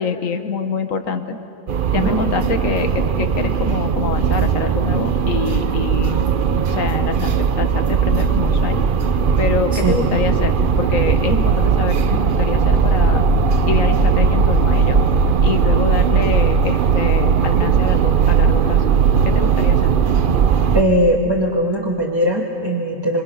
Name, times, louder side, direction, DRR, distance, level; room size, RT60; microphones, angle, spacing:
voice 1, 0.0-1.4 1.9-6.3 6.7-8.9 9.4-13.2 13.7-15.0 15.4-18.8 19.2-19.9, left 5 dB, 85° left, 8 dB, 1.7 m, -25 dB
sound 1, 1.7-20.8, right 6 dB, 50° right, 0.8 m, -17 dB
voice 2, 20.7-23.2, equal, 20° right, -2 dB, 1.6 m, -19 dB
26.5 x 25.0 x 5.7 m, 2.7 s
omnidirectional pair, 1.3 m